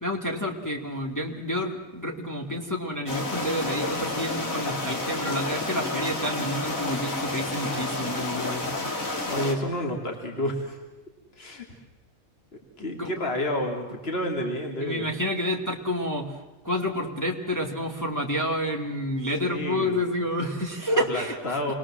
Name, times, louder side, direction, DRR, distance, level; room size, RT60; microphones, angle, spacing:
voice 1, 0.0-8.7 13.0-13.1 14.8-16.3 16.6-21.6, equal, 10° left, -1 dB, 2.3 m, -29 dB
sound 1, 3.1-9.5, left 2 dB, 70° left, 3.4 m, -30 dB
voice 2, 9.3-10.8 11.4-11.6 12.8-15.1 19.4-20.0 20.9-21.7, left 1 dB, 45° left, 2 dB, 3.1 m, -30 dB
28.5 x 21.5 x 7.5 m, 1.2 s
omnidirectional pair, 1.5 m